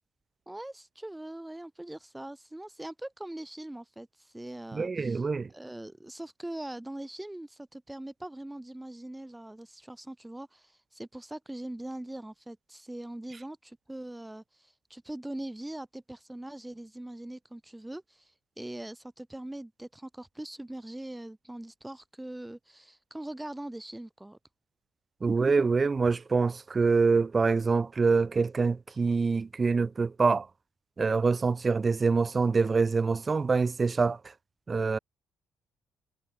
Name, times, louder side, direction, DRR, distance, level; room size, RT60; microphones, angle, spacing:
voice 1, 0.5-5.3 5.5-18.3 18.6-24.4, right 1 dB, 10° right, 1.9 m, -42 dB
voice 2, 4.7-5.5 25.2-30.5 31.0-34.2 34.7-35.0, right 4 dB, 35° right, 0.5 m, -25 dB
supercardioid pair, 60°, 0 cm